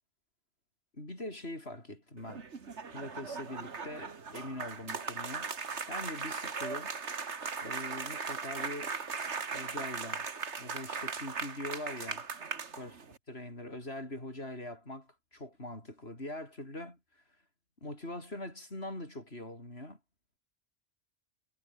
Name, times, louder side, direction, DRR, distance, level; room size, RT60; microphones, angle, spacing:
voice 1, 0.9-2.5 2.9-5.5 5.9-6.9 7.6-9.0 9.5-10.3 10.6-12.3 12.8-12.9 13.3-17.0 17.8-20.0, left 1 dB, 65° left, 7.5 m, -42 dB
sound 1, 2.2-13.2, right 5 dB, 80° right, 2.1 m, -38 dB
omnidirectional pair, 1.2 m